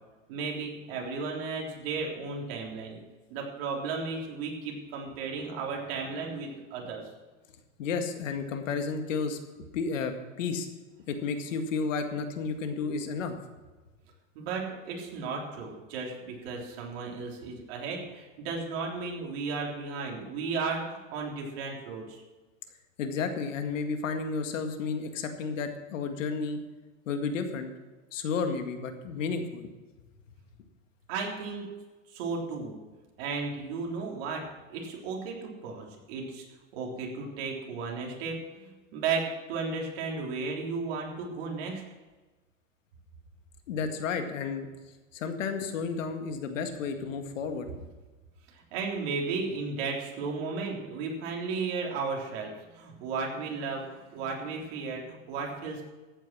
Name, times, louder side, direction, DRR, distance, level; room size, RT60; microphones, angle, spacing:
voice 1, 0.3-3.0 3.3-7.1 14.4-22.2 31.1-31.6 32.1-32.8 33.2-36.4 36.7-41.8 48.5-55.8, right 4 dB, 50° right, -1 dB, 3.6 m, -34 dB
voice 2, 7.8-9.4 9.7-10.7 11.1-13.4 23.0-26.6 27.1-29.7 43.7-44.7 45.1-47.7, left 5 dB, 75° left, 6 dB, 2.0 m, -32 dB
14.5 x 9.0 x 6.1 m, 1.2 s
supercardioid pair, 155°, 39 cm